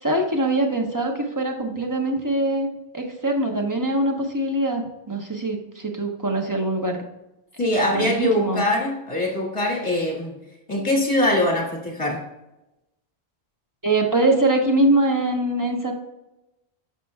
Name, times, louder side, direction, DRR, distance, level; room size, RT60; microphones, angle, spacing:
voice 1, 0.0-2.7 2.9-7.0 7.9-8.6 13.8-15.9, right 2 dB, 20° right, 2 dB, 0.9 m, -23 dB
voice 2, 7.6-10.4 10.7-12.2, left 1 dB, 30° left, -2 dB, 1.9 m, -22 dB
9.8 x 6.3 x 2.3 m, 0.95 s
omnidirectional pair, 1.1 m